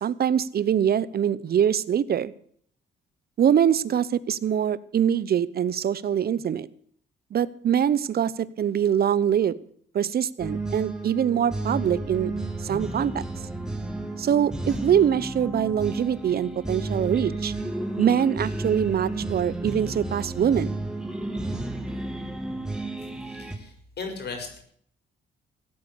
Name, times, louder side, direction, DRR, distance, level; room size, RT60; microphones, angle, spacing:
voice 1, 0.0-2.3 3.4-6.7 7.3-9.6 9.9-12.3 12.6-13.3 14.2-17.5 18.0-20.7, right 9 dB, 50° right, 19 dB, 0.8 m, -23 dB
sound 1, 10.4-23.6, right 2 dB, 5° right, 2.4 m, -32 dB
voice 2, 23.2-24.6, left 4 dB, 55° left, 5 dB, 5.3 m, -37 dB
16.0 x 8.6 x 8.3 m, 0.62 s
cardioid pair, 90°, 20 cm